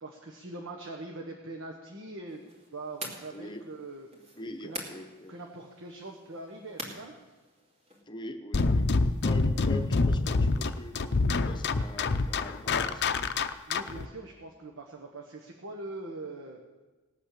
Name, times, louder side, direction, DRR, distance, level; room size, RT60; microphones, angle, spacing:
voice 1, 0.0-2.5 2.7-4.1 4.6-4.8 5.3-7.1 13.7-16.6, right 2 dB, 60° right, 2 dB, 1.3 m, -42 dB
sound 1, 2.3-8.0, right 1 dB, 30° right, 2.4 m, -45 dB
voice 2, 3.3-3.7 4.4-5.4 8.1-8.9 9.2-13.1, left 1 dB, 20° left, 6 dB, 1.0 m, -42 dB
sound 2, 8.5-14.1, left 3 dB, 50° left, 0.6 m, -26 dB
18.0 x 8.8 x 6.7 m, 1.2 s
head